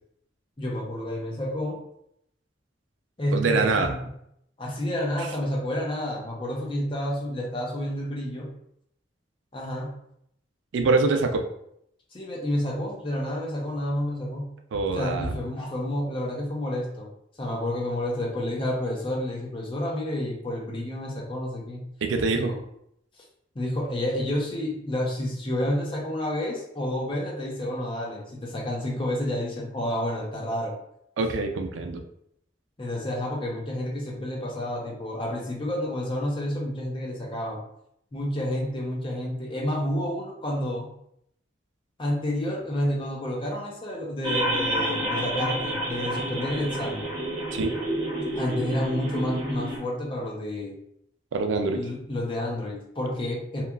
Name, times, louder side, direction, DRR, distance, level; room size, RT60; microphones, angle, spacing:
voice 1, 0.6-1.8 3.2-4.0 4.6-8.5 9.5-10.0 12.1-14.5 15.0-17.1 17.4-21.8 22.3-22.6 23.5-30.8 32.8-37.6 38.1-40.9 42.0-47.1 48.4-50.8 51.7-53.6, left 1 dB, 25° left, -2 dB, 0.5 m, -30 dB
voice 2, 3.3-3.9 10.7-11.5 14.7-15.4 22.0-22.5 31.2-32.0 47.5-47.7 51.3-51.8, right 3 dB, 80° right, 5 dB, 0.4 m, -24 dB
sound 1, 44.2-49.8, right 1 dB, 25° right, 0.8 m, -29 dB
2.9 x 2.3 x 2.3 m, 0.74 s
head